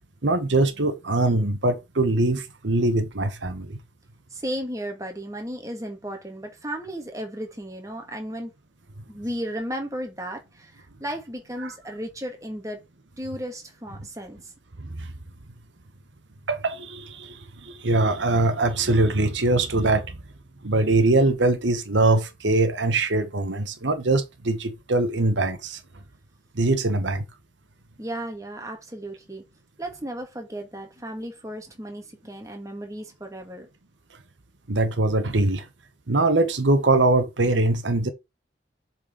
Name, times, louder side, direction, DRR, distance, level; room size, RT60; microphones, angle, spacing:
voice 1, 0.2-3.8 14.8-15.1 16.5-20.1 20.6-25.8 26.6-27.2 34.7-35.6 36.1-38.1, right 2 dB, 90° right, 1.2 m, -22 dB
voice 2, 4.3-8.5 9.1-12.8 13.2-14.5 28.0-29.4 29.8-33.7, equal, 20° right, 1.9 m, -34 dB
7.1 x 4.5 x 5.1 m
head